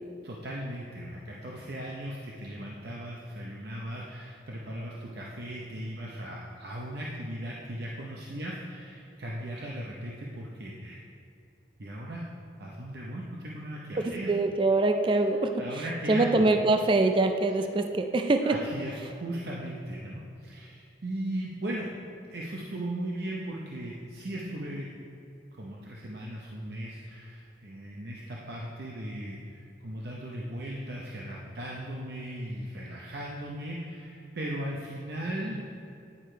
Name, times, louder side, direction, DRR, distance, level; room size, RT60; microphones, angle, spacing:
voice 1, 0.2-11.0 11.8-12.3 12.6-14.4 15.1-15.2 15.6-16.4 18.4-21.9 22.3-24.9 25.6-35.6, right 1 dB, 65° right, -3 dB, 0.7 m, -37 dB
voice 2, 14.0-18.6, right 2 dB, 30° right, 6 dB, 0.3 m, -24 dB
9.8 x 4.9 x 4.4 m, 2.6 s
head